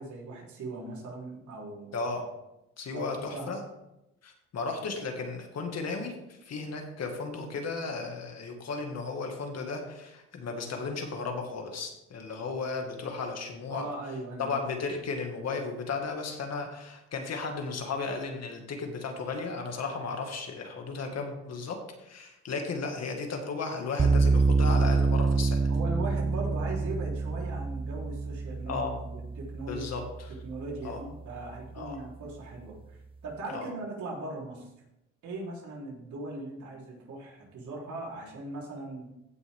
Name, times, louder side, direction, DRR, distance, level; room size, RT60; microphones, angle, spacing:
voice 1, 0.0-2.1 2.9-3.6 13.7-14.6 25.7-29.8 30.4-34.7 35.2-39.1, right 2 dB, 70° right, -3 dB, 3.8 m, -39 dB
voice 2, 1.9-2.2 2.8-3.6 4.2-13.9 14.4-25.7 28.7-28.9 29.7-30.0 30.8-31.0 31.7-32.0 33.5-33.7, left 4 dB, 60° left, 3 dB, 2.0 m, -35 dB
sound 1, 24.0-31.1, right 4 dB, 20° right, 0.4 m, -27 dB
15.5 x 6.2 x 3.7 m, 0.90 s
cardioid pair, 90°, 30 cm